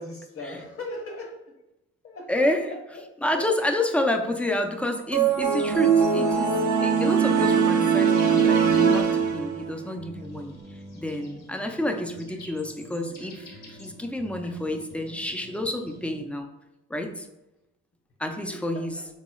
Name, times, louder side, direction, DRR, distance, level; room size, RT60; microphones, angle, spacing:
voice 1, 0.0-1.4 2.0-3.5 18.5-19.0, left 2 dB, 50° left, 1 dB, 1.0 m, -39 dB
voice 2, 2.3-2.7 3.2-6.6 6.8-10.6 10.9-16.5 16.9-17.3 18.2-19.0, left 1 dB, 5° left, 4 dB, 0.3 m, -29 dB
sound 1, 5.1-9.8, right 6 dB, 75° right, 0.6 m, -21 dB
sound 2, 8.1-16.2, equal, 65° left, 1.4 m, -46 dB
3.7 x 3.0 x 2.3 m, 0.91 s
cardioid pair, 90°, 30 cm